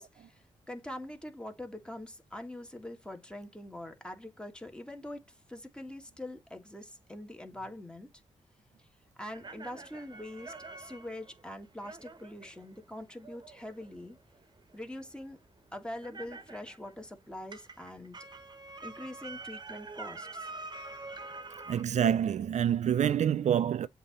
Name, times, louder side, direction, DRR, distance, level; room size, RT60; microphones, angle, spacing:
voice 1, 0.0-8.1 8.8-8.9 9.2-14.2 14.7-15.4 15.7-18.2 18.8-20.5, left 1 dB, 5° left, 2.0 m, -44 dB
sound 1, 9.3-17.1 17.4-21.8, right 3 dB, 35° right, 1.2 m, -46 dB
voice 2, 21.7-23.9, right 9 dB, 70° right, 0.5 m, -27 dB
7.7 x 3.0 x 4.2 m
cardioid pair, 65°, 12 cm